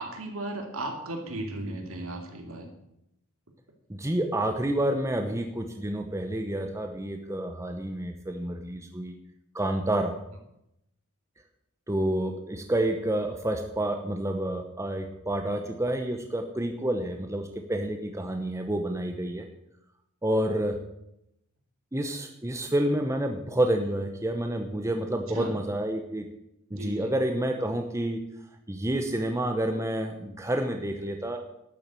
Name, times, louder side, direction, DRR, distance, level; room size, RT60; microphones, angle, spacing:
voice 1, 0.0-2.7 25.3-25.6 26.7-27.1, right 2 dB, 65° right, 3 dB, 2.5 m, -36 dB
voice 2, 3.9-9.1 9.5-10.2 11.9-19.5 20.2-20.8 21.9-26.3 26.7-28.2 28.7-31.4, right 1 dB, 15° right, 4 dB, 0.9 m, -29 dB
12.0 x 7.7 x 7.5 m, 0.82 s
head